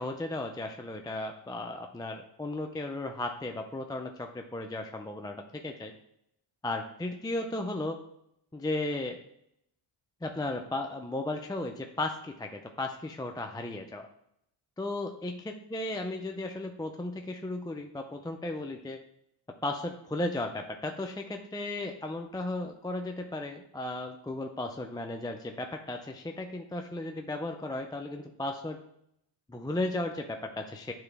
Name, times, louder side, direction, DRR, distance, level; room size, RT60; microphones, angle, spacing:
voice 1, 0.0-5.9 6.6-8.0 8.5-9.2 10.2-14.1 14.8-19.0 19.6-28.8 29.5-30.9, left 2 dB, 10° left, 3 dB, 0.5 m, -35 dB
9.5 x 3.9 x 3.4 m, 0.76 s
cardioid pair, 85°, 50 cm